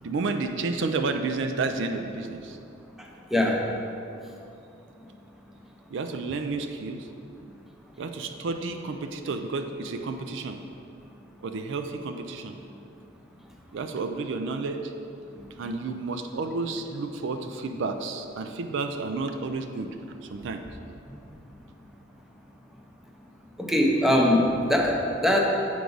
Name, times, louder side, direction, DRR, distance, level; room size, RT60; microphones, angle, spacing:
voice 1, 0.0-2.6 5.9-7.1 8.0-10.6 11.4-12.5 13.7-14.9 15.3-20.0 20.2-20.6, right 3 dB, 65° right, 6 dB, 0.4 m, -31 dB
voice 2, 3.3-3.6 23.6-25.4, left 1 dB, ahead, -1 dB, 0.6 m, -22 dB
8.1 x 4.7 x 3.9 m, 2.7 s
head